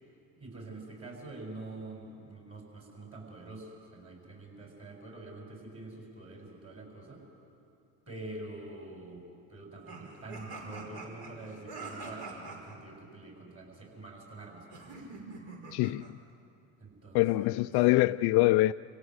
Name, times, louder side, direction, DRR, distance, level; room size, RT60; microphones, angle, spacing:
voice 1, 0.4-7.2 8.1-9.2 9.5-15.0 16.8-17.7, right 2 dB, 30° right, 7.7 m, -46 dB
sound 1, 9.9-12.8 14.7-16.1, right 3 dB, 60° right, 5.4 m, -44 dB
voice 2, 15.7-16.2 17.1-18.7, left 18 dB, 55° left, 0.5 m, -24 dB
28.0 x 17.0 x 8.1 m
supercardioid pair, 90°, 47 cm